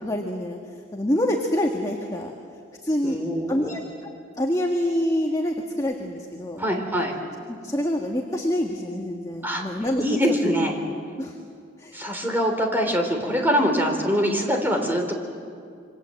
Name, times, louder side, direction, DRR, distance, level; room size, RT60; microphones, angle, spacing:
voice 1, 0.0-2.3 2.8-3.2 3.5-4.1 4.4-6.6 7.5-10.2 11.2-11.4 11.8-12.0, left 1 dB, 20° left, 1 dB, 1.7 m, -26 dB
voice 2, 3.0-3.7 6.6-7.1 9.4-9.6 10.0-10.7 11.9-15.1, equal, 10° right, 3 dB, 3.6 m, -23 dB
27.5 x 25.5 x 7.8 m, 2.3 s
head